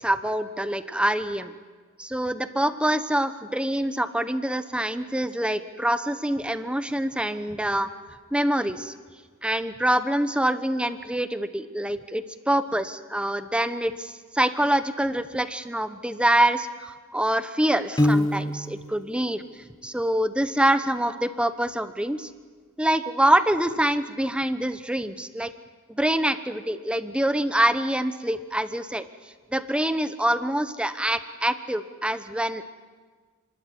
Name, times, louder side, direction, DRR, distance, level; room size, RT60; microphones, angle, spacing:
voice 1, 0.0-1.5 2.0-7.9 8.3-8.9 9.4-19.4 19.8-22.3 22.8-25.5 25.9-29.0 29.5-32.6, right 1 dB, 5° right, 11 dB, 0.9 m, -25 dB
Piano, 18.0-19.0, left 1 dB, 20° left, 1.1 m, -23 dB
29.5 x 13.0 x 9.4 m, 1.5 s
head